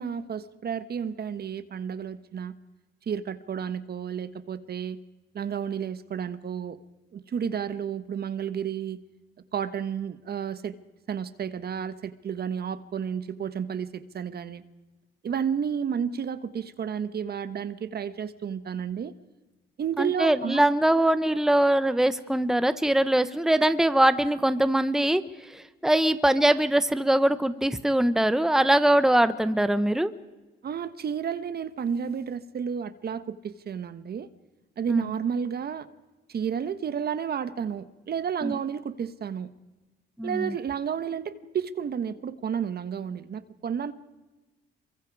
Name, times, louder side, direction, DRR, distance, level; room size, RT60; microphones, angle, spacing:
voice 1, 0.0-2.5 3.1-5.0 5.3-6.8 7.1-9.0 9.5-10.7 11.1-14.6 15.2-19.1 19.8-20.7 30.6-34.3 34.8-35.9 36.3-39.5 40.2-43.9, right 7 dB, 50° right, 12 dB, 1.4 m, -31 dB
voice 2, 20.0-25.2 25.8-30.1 34.9-35.1 38.4-38.5 40.2-40.5, right 1 dB, ahead, 12 dB, 1.1 m, -22 dB
28.0 x 24.0 x 4.9 m, 1.1 s
cardioid pair, 90°, 20 cm